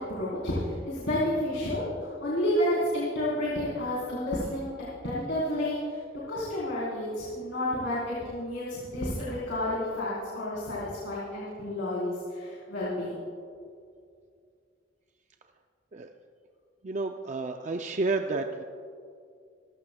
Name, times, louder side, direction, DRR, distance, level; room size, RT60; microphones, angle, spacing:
voice 1, 0.1-4.7 5.0-6.0 6.3-13.2, left 1 dB, 75° left, -9 dB, 3.9 m, -30 dB
voice 2, 16.8-18.6, right 3 dB, 40° right, 4 dB, 0.5 m, -30 dB
27.0 x 15.0 x 2.3 m, 2.3 s
head